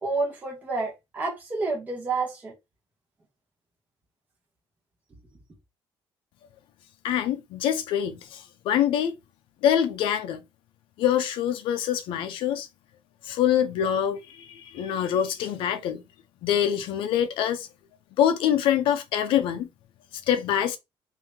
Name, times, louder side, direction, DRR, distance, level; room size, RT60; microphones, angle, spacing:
voice 1, 0.0-2.5, right 3 dB, 20° right, 1.2 m, -29 dB
voice 2, 7.0-9.1 9.6-10.4 11.0-12.7 13.2-16.0 16.4-17.7 18.2-19.7 20.3-20.8, left 10 dB, 70° left, 0.6 m, -25 dB
3.0 x 2.7 x 3.5 m
cardioid pair, 175°, 9 cm